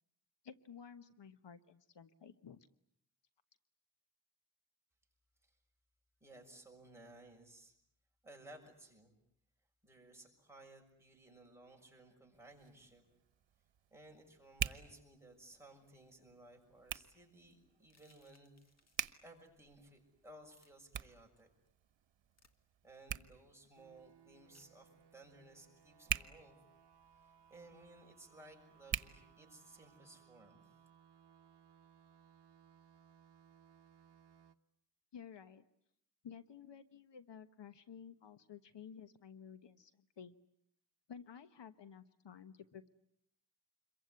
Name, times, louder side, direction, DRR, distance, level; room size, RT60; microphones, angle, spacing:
voice 1, 0.4-2.7 35.1-35.6 36.2-40.3 41.1-42.9, left 7 dB, 75° left, 11 dB, 1.2 m, -53 dB
voice 2, 6.2-7.7 8.2-9.1 9.8-13.0 13.9-18.5 19.2-21.5 22.8-26.5 27.2-30.8, right 1 dB, 5° right, 0 dB, 6.6 m, -59 dB
Hands, 12.3-30.0, right 9 dB, 85° right, 1.1 m, -47 dB
sound 1, 17.8-19.2 20.5-20.7 22.3-22.6 24.5-24.7, left 3 dB, 35° left, 2.0 m, -71 dB
sound 2, 23.8-34.6, right 8 dB, 70° right, 1.1 m, -65 dB
27.5 x 23.0 x 9.5 m, 0.73 s
wide cardioid pair, 145°, 43 cm